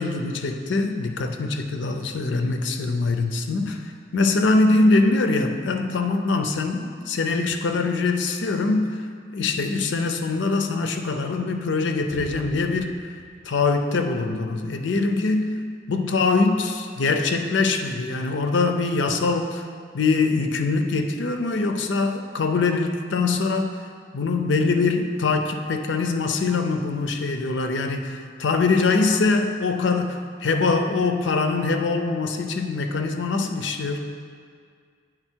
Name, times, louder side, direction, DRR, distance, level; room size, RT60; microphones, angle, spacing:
voice 1, 0.0-9.0 9.3-12.9 13.4-15.5 15.9-19.7 19.9-23.7 24.1-34.1, left 3 dB, 85° left, 5 dB, 0.5 m, -23 dB
Explosion, 12.1-15.9, equal, 5° right, 0.8 m, -46 dB
8.9 x 3.9 x 4.4 m, 2.1 s
head